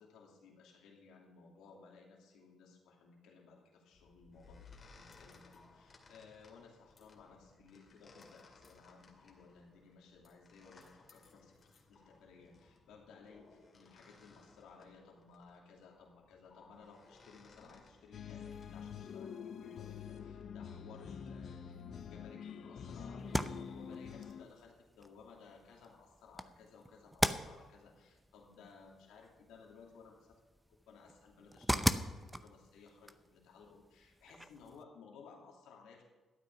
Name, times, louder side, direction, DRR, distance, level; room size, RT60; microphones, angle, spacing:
voice 1, 0.0-30.4 30.7-36.0, left 5 dB, 90° left, -1 dB, 2.8 m, -59 dB
sound 1, 3.9-18.7, left 4 dB, 40° left, 2.3 m, -62 dB
sound 2, 18.1-24.4, left 7 dB, 60° left, 0.9 m, -46 dB
sound 3, 23.2-34.8, right 1 dB, 5° right, 0.7 m, -40 dB
12.5 x 9.1 x 6.0 m, 1.3 s
cardioid pair, 90°, 0 cm